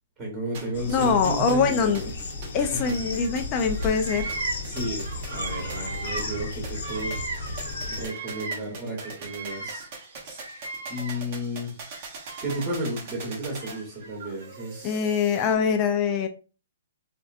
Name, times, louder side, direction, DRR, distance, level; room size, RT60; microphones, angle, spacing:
voice 1, 0.2-1.9 2.5-2.9 4.6-9.9 10.2-10.5 10.9-11.8 12.4-15.0, right 1 dB, 10° right, -3 dB, 1.0 m, -33 dB
sound 1, 0.5-15.5, right 4 dB, 30° right, 0.7 m, -43 dB
sound 2, 0.7-8.1, left 3 dB, 50° left, 0.8 m, -34 dB
voice 2, 0.9-2.1 2.5-4.4 14.8-16.3, left 6 dB, 20° left, 6 dB, 0.3 m, -24 dB
Bird vocalization bird call bird song, 2.6-3.4 3.6-8.7 9.0-11.4 11.9-12.8 13.6-14.7, right 3 dB, 75° right, 0.8 m, -37 dB
4.3 x 2.6 x 2.4 m, 0.35 s
hypercardioid pair, 180°, 0 cm